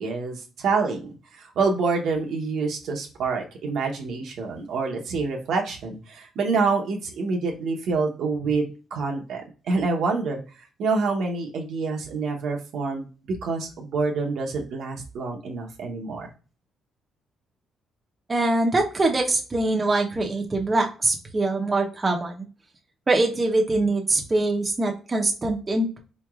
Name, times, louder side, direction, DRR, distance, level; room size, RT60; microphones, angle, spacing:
voice 1, 0.0-13.1 13.4-16.3, right 4 dB, 75° right, 1 dB, 0.8 m, -27 dB
voice 2, 18.3-22.5 23.1-26.0, right 2 dB, 25° right, 1 dB, 0.8 m, -23 dB
4.4 x 3.0 x 2.3 m, 0.35 s
cardioid pair, 90°, 0 cm